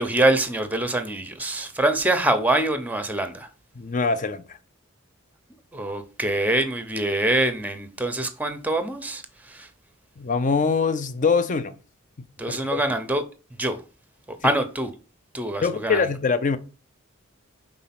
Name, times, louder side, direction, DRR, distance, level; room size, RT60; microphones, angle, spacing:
voice 1, 0.0-3.5 5.7-9.7 12.4-13.2 13.6-13.8 14.3-14.9 15.3-16.1, right 1 dB, 10° right, 0.7 m, -24 dB
voice 2, 3.8-4.4 10.2-11.7 12.5-12.8 14.4-14.5 15.6-16.6, left 5 dB, 40° left, 0.5 m, -23 dB
5.2 x 3.8 x 5.9 m
head